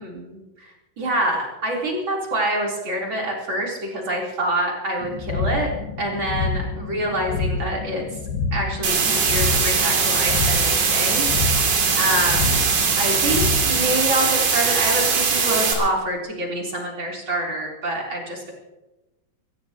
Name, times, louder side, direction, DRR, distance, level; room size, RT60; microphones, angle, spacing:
voice 1, 0.0-0.7 1.0-5.7 6.0-8.0 8.5-11.7 12.0-12.6 12.9-18.5, right 1 dB, 30° right, -3 dB, 4.1 m, -26 dB
sound 1, 5.0-14.1, left 4 dB, 70° left, 2.7 m, -28 dB
sound 2, 8.8-15.7, right 5 dB, 75° right, 4.7 m, -21 dB
23.0 x 17.0 x 2.9 m, 1.0 s
omnidirectional pair, 4.6 m